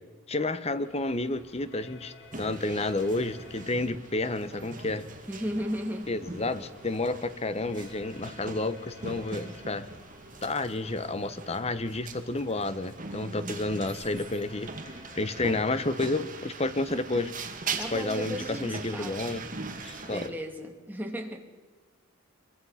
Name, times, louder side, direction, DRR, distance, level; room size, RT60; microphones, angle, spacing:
voice 1, 0.3-5.1 6.1-9.9 10.4-14.7 15.1-17.3 17.9-19.4 19.8-20.3, left 2 dB, 30° left, 13 dB, 1.0 m, -30 dB
sound 1, 0.8-20.2, left 3 dB, 85° left, 5.9 m, -54 dB
sound 2, 2.3-20.3, right 4 dB, 35° right, 2.2 m, -41 dB
voice 2, 5.3-6.1 17.8-19.3 20.1-21.4, equal, 10° right, 3 dB, 2.4 m, -35 dB
24.5 x 23.0 x 5.8 m, 1.3 s
head